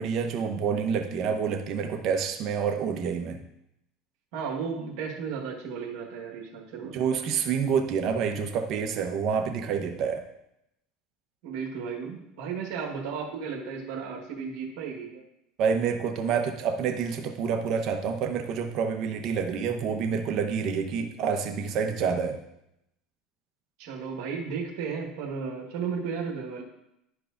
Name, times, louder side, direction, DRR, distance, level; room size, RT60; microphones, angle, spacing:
voice 1, 0.0-3.4 6.9-10.2 15.6-22.4, right 6 dB, 55° right, 5 dB, 1.0 m, -28 dB
voice 2, 4.3-7.0 11.4-15.2 23.8-26.6, right 6 dB, 75° right, -2 dB, 1.4 m, -34 dB
12.0 x 4.7 x 2.6 m, 0.82 s
supercardioid pair, 115°, 0 cm